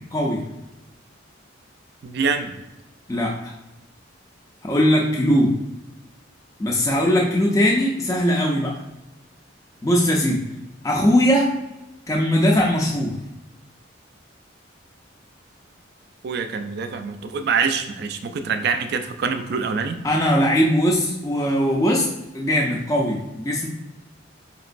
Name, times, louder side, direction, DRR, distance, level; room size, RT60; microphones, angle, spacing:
voice 1, 2.0-2.5 16.2-20.0, right 5 dB, 55° right, 8 dB, 0.4 m, -25 dB
voice 2, 3.1-3.5 4.6-5.5 6.6-8.7 9.8-10.4 10.8-11.5 12.1-13.1 20.0-22.1 22.3-23.7, equal, 15° left, -2 dB, 0.4 m, -20 dB
5.0 x 2.9 x 2.5 m, 0.98 s
head